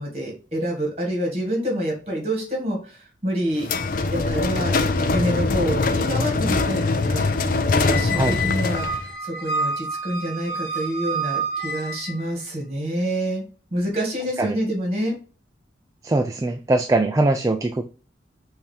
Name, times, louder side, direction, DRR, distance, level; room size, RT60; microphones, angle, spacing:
voice 1, 0.0-3.7 4.1-4.7 5.1-13.4 13.7-15.1, equal, 35° right, 0 dB, 2.0 m, -27 dB
sound 1, 3.6-9.1, left 3 dB, 50° left, 0.4 m, -22 dB
Squeak, 7.8-12.3, right 2 dB, 65° left, 1.0 m, -29 dB
voice 2, 16.0-17.9, right 2 dB, 20° right, 6 dB, 0.3 m, -21 dB
5.5 x 2.7 x 3.3 m, 0.36 s
head